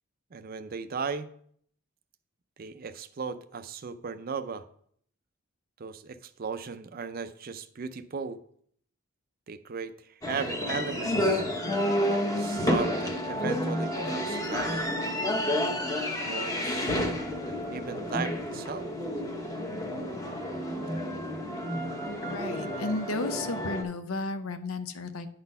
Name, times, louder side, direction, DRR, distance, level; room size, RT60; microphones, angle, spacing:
voice 1, 0.3-1.3 2.6-4.6 5.8-8.4 9.5-11.4 12.3-14.8 16.3-17.1 17.5-18.9, right 5 dB, 45° right, 12 dB, 0.4 m, -37 dB
sound 1, 10.2-23.8, left 1 dB, 15° left, 0.9 m, -30 dB
voice 2, 22.2-25.3, left 2 dB, 80° left, 10 dB, 0.7 m, -33 dB
9.5 x 4.1 x 5.4 m, 0.63 s
head